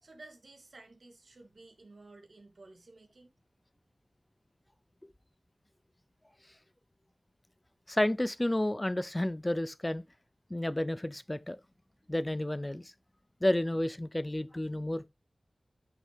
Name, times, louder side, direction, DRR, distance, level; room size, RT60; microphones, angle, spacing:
voice 1, 0.0-3.3, right 2 dB, 65° right, 2.6 m, -54 dB
voice 2, 7.9-10.0 10.5-11.6 12.1-12.9 13.4-15.1, left 1 dB, 20° left, 0.4 m, -31 dB
12.0 x 6.1 x 3.3 m
cardioid pair, 50°, 0 cm